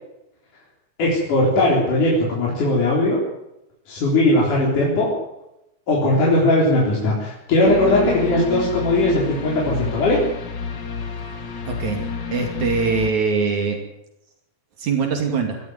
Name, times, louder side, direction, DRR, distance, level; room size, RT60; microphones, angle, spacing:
voice 1, 1.0-3.2 3.9-5.1 5.9-10.2, left 1 dB, 75° left, -4 dB, 5.6 m, -19 dB
sound 1, 7.6-13.1, left 5 dB, 40° left, 2.0 m, -30 dB
voice 2, 11.7-12.0 12.3-13.8 14.8-15.6, right 5 dB, 65° right, 4 dB, 4.0 m, -22 dB
19.5 x 14.5 x 9.5 m, 0.87 s
omnidirectional pair, 3.6 m